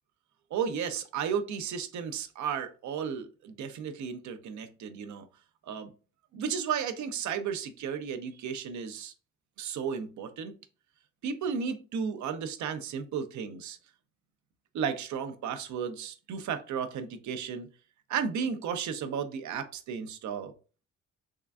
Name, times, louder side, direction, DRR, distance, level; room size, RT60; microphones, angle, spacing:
voice 1, 0.5-5.3 5.6-5.9 6.3-9.1 9.6-10.5 11.2-13.8 14.7-17.7 18.1-20.5, right 7 dB, 70° right, 0.7 m, -34 dB
3.7 x 3.3 x 2.3 m
cardioid pair, 90°, 30 cm